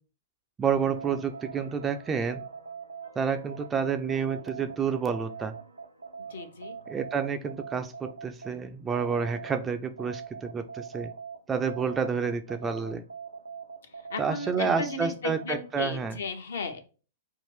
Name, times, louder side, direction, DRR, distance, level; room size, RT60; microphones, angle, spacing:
voice 1, 0.6-2.4 3.2-5.5 6.9-11.1 11.5-13.0 14.2-16.2, right 6 dB, 15° right, 7 dB, 0.4 m, -29 dB
sound 1, 0.7-9.6 10.0-16.0, right 6 dB, 80° right, 0.5 m, -43 dB
voice 2, 6.3-6.8 14.1-16.8, left 4 dB, 60° left, 6 dB, 0.9 m, -35 dB
5.5 x 2.5 x 3.3 m, 0.36 s
figure-of-eight pair, 105°, 0 cm